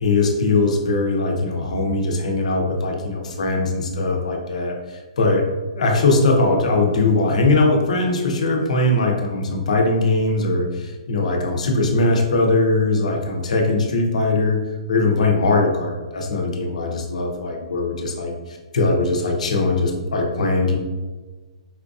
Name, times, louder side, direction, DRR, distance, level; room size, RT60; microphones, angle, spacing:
voice 1, 0.0-5.4 5.7-14.6 14.9-20.8, left 2 dB, 80° left, 1 dB, 0.7 m, -20 dB
4.3 x 2.3 x 2.6 m, 1.3 s
hypercardioid pair, 165°, 4 cm